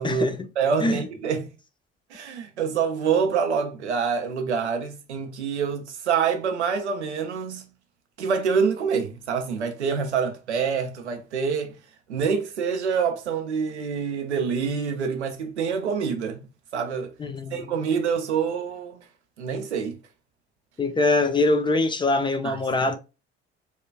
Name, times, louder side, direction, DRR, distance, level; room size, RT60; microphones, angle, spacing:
voice 1, 0.0-0.5 0.8-1.0 17.2-17.7 20.8-23.0, left 2 dB, 15° left, 0.3 m, -23 dB
voice 2, 0.6-1.5 2.1-7.6 8.2-11.8 12.1-17.1 17.5-19.0 19.4-20.0 22.4-22.6, right 6 dB, 80° right, 0.5 m, -26 dB
4.3 x 2.3 x 2.3 m
figure-of-eight pair, 50°, 33 cm